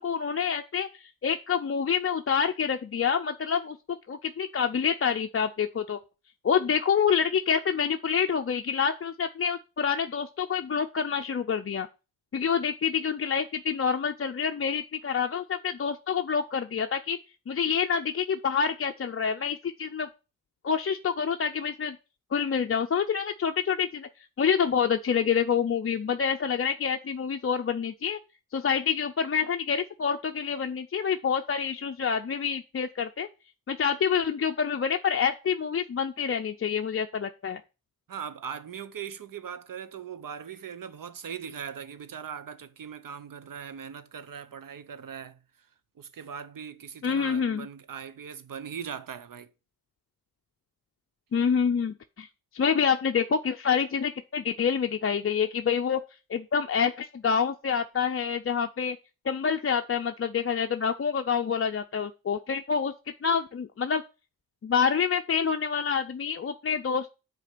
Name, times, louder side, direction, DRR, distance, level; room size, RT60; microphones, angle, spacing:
voice 1, 0.0-3.8 4.1-6.0 6.4-11.9 12.3-17.2 17.5-20.1 20.6-22.0 22.3-24.1 24.4-28.2 28.5-33.3 33.7-37.6 47.0-47.7 51.3-52.3 52.5-56.0 56.3-59.0 59.3-62.9 63.2-64.0 64.6-67.1, left 7 dB, 40° left, 0.5 m, -27 dB
voice 2, 38.1-45.7 46.0-49.5, right 7 dB, 65° right, 0.8 m, -40 dB
7.4 x 4.2 x 6.6 m
wide cardioid pair, 85°, 36 cm